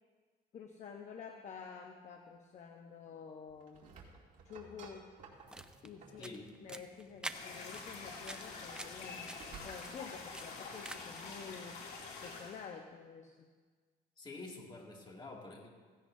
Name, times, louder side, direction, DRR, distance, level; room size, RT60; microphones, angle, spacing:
voice 1, 0.5-3.9 4.4-5.1 5.8-6.3 6.6-11.8 12.2-13.5, left 6 dB, 45° left, 3 dB, 1.0 m, -49 dB
sound 1, 3.5-6.3 7.9-10.1, right 5 dB, 50° right, 2.4 m, -56 dB
sound 2, 5.3-11.3, right 1 dB, 5° right, 0.6 m, -49 dB
sound 3, 7.3-12.7, left 4 dB, 75° left, 2.9 m, -47 dB
voice 2, 14.2-15.7, left 3 dB, 25° left, -1 dB, 2.5 m, -48 dB
16.5 x 16.0 x 2.7 m, 1.5 s
cardioid pair, 110°, 17 cm